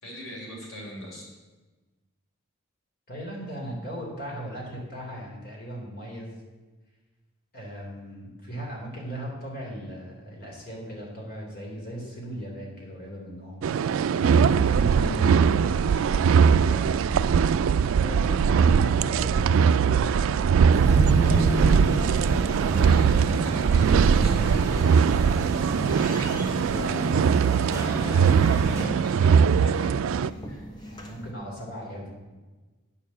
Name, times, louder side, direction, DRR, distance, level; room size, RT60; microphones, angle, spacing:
voice 1, 0.0-1.3 14.1-17.4 22.6-25.1 27.8-30.6, equal, 80° left, -3 dB, 3.9 m, -38 dB
voice 2, 3.1-6.4 7.5-13.6 17.9-23.3 26.1-27.6 30.8-32.1, equal, 45° left, -2 dB, 3.1 m, -38 dB
sound 1, 13.6-30.3, right 6 dB, 80° right, 0.3 m, -21 dB
sound 2, 20.7-28.9, equal, 15° right, 1.6 m, -31 dB
sound 3, 24.8-31.3, equal, 20° left, 1.2 m, -43 dB
9.3 x 6.7 x 7.2 m, 1.2 s
head